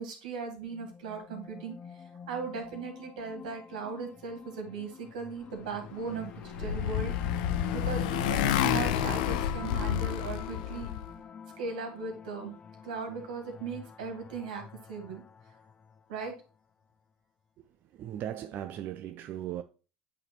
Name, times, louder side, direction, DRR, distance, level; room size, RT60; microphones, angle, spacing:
voice 1, 0.0-7.1 7.7-10.9 11.6-12.5 12.8-14.6 14.9-15.2 16.1-16.3, right 5 dB, 90° right, 2.0 m, -38 dB
sound 1, 0.6-16.0, left 6 dB, 30° left, 0.4 m, -44 dB
Motorcycle, 6.0-11.1, left 11 dB, 80° left, 0.5 m, -30 dB
voice 2, 17.6-19.6, right 11 dB, 50° right, 0.5 m, -38 dB
8.4 x 3.3 x 4.3 m
supercardioid pair, 95°, 4 cm